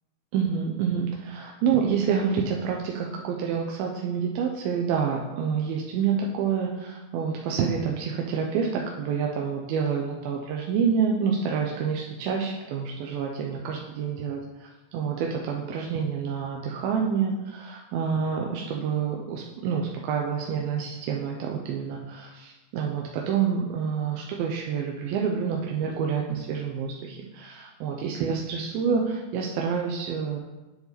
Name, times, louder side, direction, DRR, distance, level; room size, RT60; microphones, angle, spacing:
voice 1, 0.3-30.4, right 6 dB, 80° right, 0 dB, 2.2 m, -28 dB
9.4 x 4.7 x 4.1 m, 1.1 s
omnidirectional pair, 4.7 m